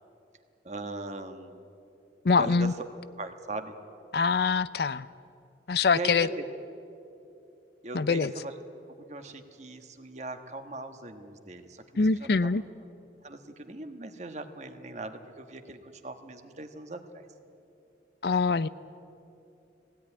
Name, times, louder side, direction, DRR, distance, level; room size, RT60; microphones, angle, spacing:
voice 1, 0.6-1.7 2.4-2.8 3.2-3.7 5.7-6.5 7.8-8.5 8.9-12.3 13.2-17.3, right 2 dB, 40° right, 7 dB, 1.4 m, -39 dB
voice 2, 2.2-2.7 4.1-5.1 5.7-6.3 7.9-8.3 12.0-12.6 18.2-18.7, left 4 dB, 60° left, 16 dB, 0.5 m, -24 dB
20.0 x 16.5 x 9.8 m, 2.8 s
head